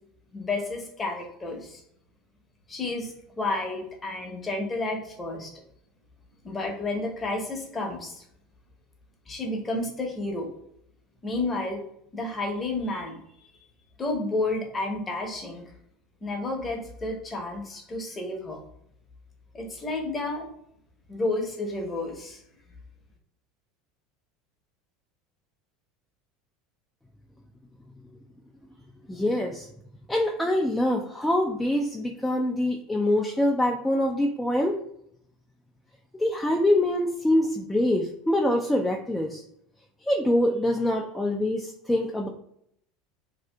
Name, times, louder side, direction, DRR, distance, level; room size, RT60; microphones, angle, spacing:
voice 1, 0.3-1.8 2.7-5.5 6.4-8.2 9.3-10.5 11.2-11.8 12.1-13.5 14.0-15.6 16.2-18.6 19.5-20.5 21.1-22.4, left 2 dB, 25° left, 1 dB, 0.8 m, -31 dB
voice 2, 29.1-29.7 30.1-34.8 36.2-39.4 40.0-42.3, left 1 dB, 10° left, 0 dB, 0.3 m, -24 dB
2.7 x 2.4 x 2.2 m, 0.72 s
hypercardioid pair, 80°, 0 cm